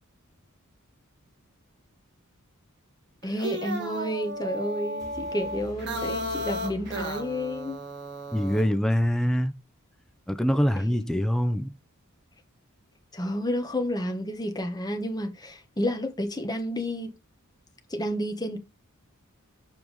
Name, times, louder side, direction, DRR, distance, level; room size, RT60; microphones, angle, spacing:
voice 1, 3.2-7.8 10.8-10.9 13.1-17.1 17.9-18.6, left 1 dB, 20° left, 1.3 m, -30 dB
sound 1, 3.2-8.7, equal, 50° right, 1.9 m, -34 dB
sound 2, 5.0-8.0, equal, 15° right, 2.4 m, -45 dB
voice 2, 8.3-9.5 10.3-11.7, equal, ahead, 0.6 m, -24 dB
7.4 x 4.6 x 4.9 m
head